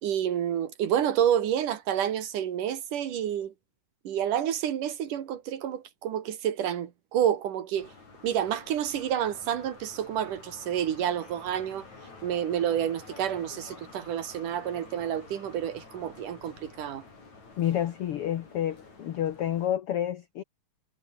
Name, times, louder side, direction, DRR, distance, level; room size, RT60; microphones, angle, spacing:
voice 1, 0.0-3.5 4.0-7.9 8.2-11.9 12.2-17.0, right 10 dB, 70° right, 3.3 m, -29 dB
sound 1, 7.8-19.7, left 3 dB, 55° left, 7.9 m, -50 dB
voice 2, 17.6-20.4, left 11 dB, 75° left, 1.3 m, -29 dB
omnidirectional pair, 3.9 m